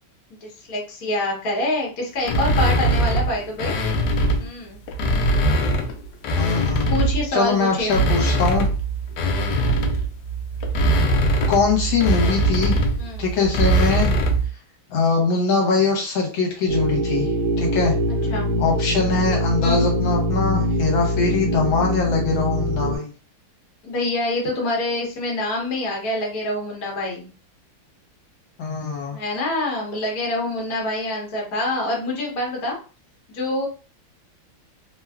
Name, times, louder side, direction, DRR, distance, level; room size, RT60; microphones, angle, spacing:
voice 1, 0.4-3.7 4.4-4.8 6.9-7.9 13.0-13.3 18.3-18.5 19.6-19.9 23.8-27.3 29.1-32.8 33.3-33.7, left 1 dB, 50° left, -1 dB, 1.2 m, -26 dB
sound 1, 2.2-4.5 4.9-7.3 7.7-14.5, right 1 dB, 90° left, 0.9 m, -21 dB
voice 2, 6.3-6.9 7.3-8.7 11.5-12.8 13.2-14.1 14.9-17.3 17.6-17.9 18.6-23.1 28.6-29.2, left 4 dB, 75° left, -1 dB, 1.5 m, -22 dB
sound 2, 16.7-23.0, equal, 85° right, 1.4 m, -23 dB
3.4 x 2.2 x 2.3 m, 0.36 s
omnidirectional pair, 2.3 m